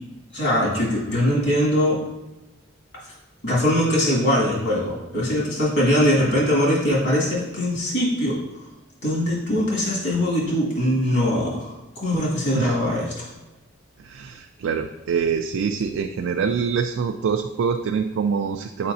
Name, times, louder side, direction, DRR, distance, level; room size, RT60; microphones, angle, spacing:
voice 1, 0.3-2.0 3.4-8.4 9.0-13.3, equal, 60° left, -5 dB, 2.1 m, -21 dB
voice 2, 14.0-18.9, right 6 dB, 80° right, 5 dB, 0.3 m, -25 dB
7.6 x 4.8 x 2.7 m, 1.1 s
head